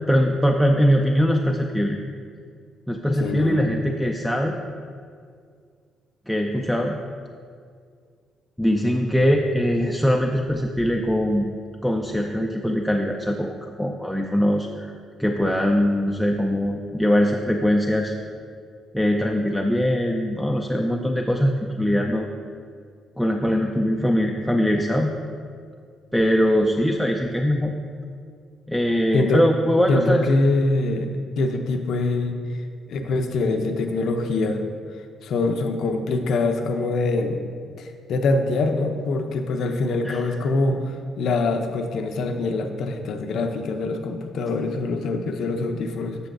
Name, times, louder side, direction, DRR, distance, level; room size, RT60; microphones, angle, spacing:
voice 1, 0.1-2.0 2.9-4.6 6.3-7.0 8.6-11.5 11.8-14.9 15.2-18.1 18.9-22.3 23.2-25.1 26.1-27.7 28.7-30.3 40.0-40.2, equal, ahead, 1 dB, 0.4 m, -21 dB
voice 2, 3.2-3.6 29.1-29.4 29.9-31.1 31.4-32.4 32.9-34.6 35.2-37.4 37.8-46.2, left 2 dB, 70° left, 5 dB, 0.6 m, -24 dB
8.3 x 6.7 x 2.6 m, 2.2 s
cardioid pair, 90°, 0 cm